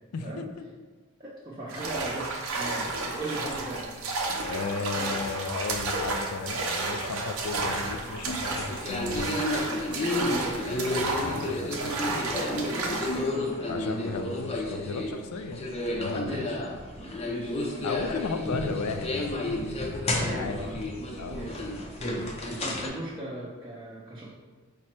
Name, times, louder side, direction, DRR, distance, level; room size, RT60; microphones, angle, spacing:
voice 1, 0.1-0.4 4.4-9.5 10.6-12.3 13.7-16.5 17.8-19.3 20.0-20.6 21.2-21.4, left 4 dB, 90° left, 7 dB, 0.4 m, -35 dB
voice 2, 1.2-3.9 4.9-5.1 10.2-10.5 11.6-13.7 16.2-16.6 17.0-17.9 20.2-20.7 21.3-21.6 22.4-24.3, right 1 dB, 20° right, -8 dB, 0.5 m, -38 dB
sound 1, 1.7-13.3, right 3 dB, 80° right, 0.6 m, -32 dB
sound 2, 7.7-22.9, left 1 dB, 30° left, 0.5 m, -32 dB
4.9 x 2.1 x 4.3 m, 1.4 s
head